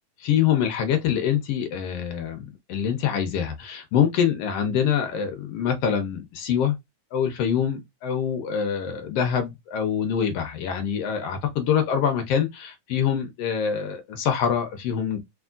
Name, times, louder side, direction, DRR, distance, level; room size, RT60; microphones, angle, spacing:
voice 1, 0.2-6.8 7.1-15.2, left 8 dB, 75° left, 1.5 m, -25 dB
4.3 x 3.6 x 2.3 m
omnidirectional pair, 3.4 m